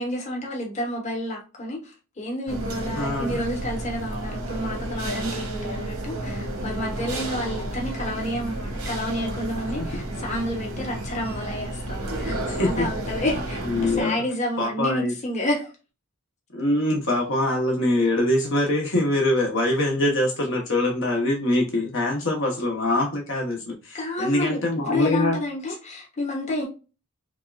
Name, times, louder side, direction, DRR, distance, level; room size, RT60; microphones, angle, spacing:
voice 1, 0.0-15.7 23.9-26.7, left 1 dB, 30° left, 1.1 m, -30 dB
sound 1, 2.5-14.0, right 1 dB, 90° right, 1.2 m, -31 dB
voice 2, 3.0-3.4 9.8-9.9 12.4-12.9 13.7-14.2 14.6-15.1 16.5-25.4, left 1 dB, 55° left, 1.0 m, -23 dB
5.2 x 2.5 x 2.3 m
head